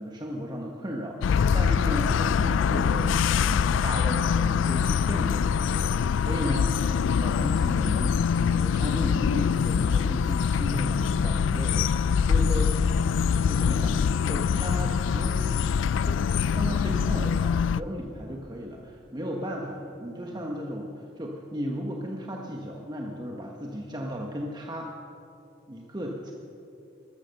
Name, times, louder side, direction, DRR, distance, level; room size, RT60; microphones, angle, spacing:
voice 1, 0.0-6.8 7.2-11.9 12.2-12.8 13.5-15.5 16.0-16.2 16.5-24.9 25.7-26.3, equal, 25° right, 0 dB, 1.1 m, -35 dB
sound 1, 1.2-17.8, left 6 dB, 85° left, 0.3 m, -24 dB
14.0 x 13.5 x 6.5 m, 2.7 s
head